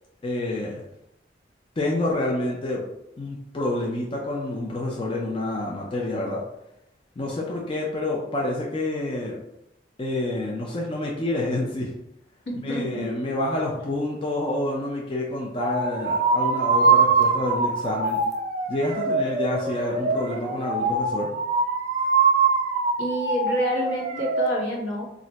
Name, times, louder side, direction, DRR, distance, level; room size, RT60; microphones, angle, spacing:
voice 1, 0.2-0.8 1.8-2.8 3.2-6.4 7.2-9.4 10.0-11.9 12.6-18.2 18.7-21.3, left 1 dB, 30° left, -2 dB, 0.4 m, -28 dB
voice 2, 12.5-13.1 23.0-25.1, equal, 80° left, -5 dB, 1.1 m, -28 dB
sound 1, 15.6-24.5, right 4 dB, 40° right, 0.4 m, -23 dB
2.4 x 2.1 x 3.9 m, 0.85 s
head